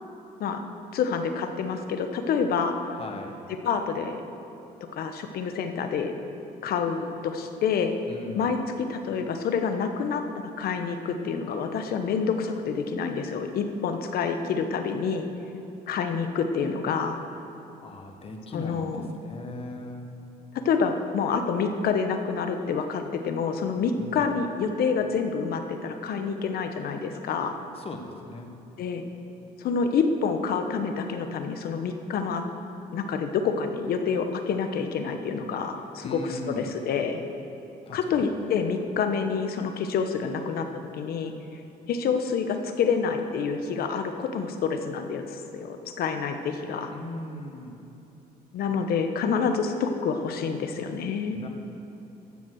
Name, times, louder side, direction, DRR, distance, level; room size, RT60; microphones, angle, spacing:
voice 1, 0.9-2.8 3.6-4.2 4.9-6.1 6.6-7.9 8.3-15.3 15.9-17.2 18.5-19.1 20.5-27.6 28.8-29.0 29.6-32.4 32.9-36.2 36.5-37.2 37.9-40.7 40.9-41.3 41.9-46.9 48.5-51.4, left 5 dB, 65° left, 6 dB, 1.1 m, -27 dB
voice 2, 3.0-3.4 8.1-8.5 17.8-20.1 24.0-24.3 27.7-28.5 36.0-36.7 37.9-38.3 46.9-47.8 51.3-51.5, left 2 dB, 35° left, 4 dB, 1.5 m, -38 dB
14.0 x 7.4 x 6.4 m, 3.0 s
cardioid pair, 110°, 17 cm